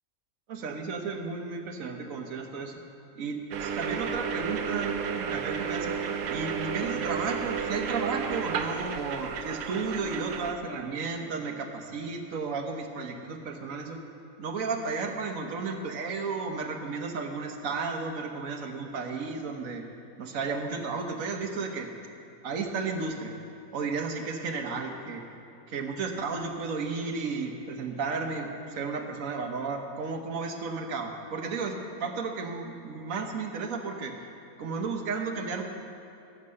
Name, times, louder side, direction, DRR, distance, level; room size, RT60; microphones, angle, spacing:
voice 1, 0.5-2.7 3.2-5.9 6.3-14.0 14.4-19.8 20.2-21.9 22.4-23.3 23.7-25.2 25.7-34.1 34.6-35.6, right 4 dB, 70° right, 4 dB, 1.4 m, -33 dB
sound 1, 3.5-10.5, right 7 dB, 85° right, 1.2 m, -32 dB
15.0 x 6.7 x 6.4 m, 2.8 s
omnidirectional pair, 1.5 m